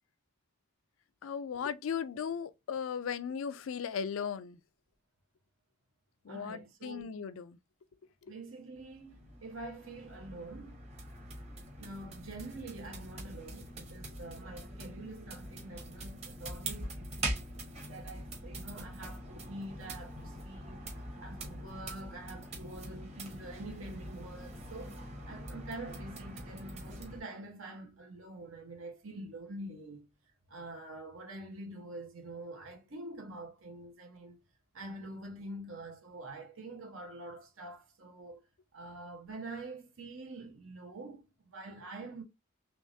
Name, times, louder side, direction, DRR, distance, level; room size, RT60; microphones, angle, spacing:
voice 1, 1.2-4.6 6.2-7.6 8.2-8.3, left 7 dB, 75° left, 0.4 m, -37 dB
voice 2, 6.3-7.2 8.3-10.8 11.8-17.5 17.8-20.8 21.2-30.1 30.5-34.4 34.7-38.4 38.7-42.2, right 2 dB, 80° right, 1.1 m, -46 dB
sound 1, 8.7-27.2, right 1 dB, 30° right, 1.0 m, -43 dB
3.4 x 3.1 x 2.6 m
head